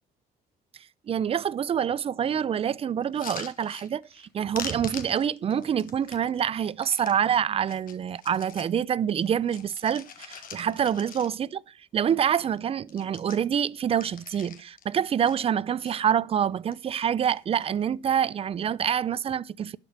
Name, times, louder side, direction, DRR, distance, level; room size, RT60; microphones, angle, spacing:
voice 1, 1.1-11.6 11.9-19.8, right 8 dB, 35° right, 0.5 m, -26 dB
sound 1, 3.0-4.3 4.5-7.2 7.6-8.8 9.1-11.6 12.0-12.1 12.3-12.6 12.8-14.9 15.2-15.9 16.5-17.0 17.2-17.8 18.6-18.9, left 8 dB, 55° left, 1.6 m, -44 dB
11.5 x 5.2 x 7.2 m
cardioid pair, 110°, 17 cm